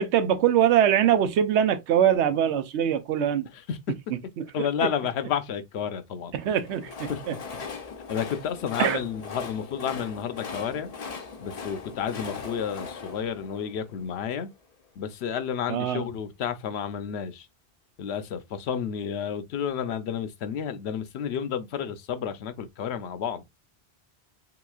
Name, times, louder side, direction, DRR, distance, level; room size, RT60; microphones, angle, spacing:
voice 1, 0.0-3.5 6.3-7.3 8.8-9.0 15.7-16.0, right 9 dB, 90° right, 0.9 m, -23 dB
voice 2, 4.5-6.3 7.1-7.2 8.1-10.9 11.4-14.5 15.0-17.5 18.0-23.4, left 8 dB, 75° left, 0.8 m, -31 dB
Train, 6.4-14.5, left 5 dB, 45° left, 0.5 m, -40 dB
3.8 x 2.9 x 2.3 m
omnidirectional pair, 1.1 m